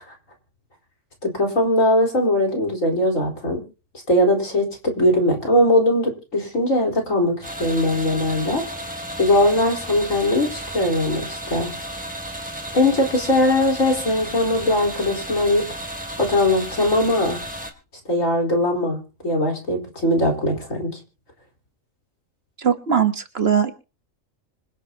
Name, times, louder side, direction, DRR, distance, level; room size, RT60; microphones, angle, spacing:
voice 1, 1.2-3.6 4.1-8.6 9.2-11.7 12.7-15.6 16.2-17.4 18.0-19.0 19.2-21.0, left 1 dB, 80° left, 1 dB, 4.7 m, -20 dB
sound 1, 7.4-17.7, right 1 dB, 5° right, 2.3 m, -33 dB
voice 2, 22.6-23.7, right 7 dB, 50° right, 9 dB, 1.5 m, -20 dB
26.0 x 9.9 x 2.9 m, 0.34 s
omnidirectional pair, 1.4 m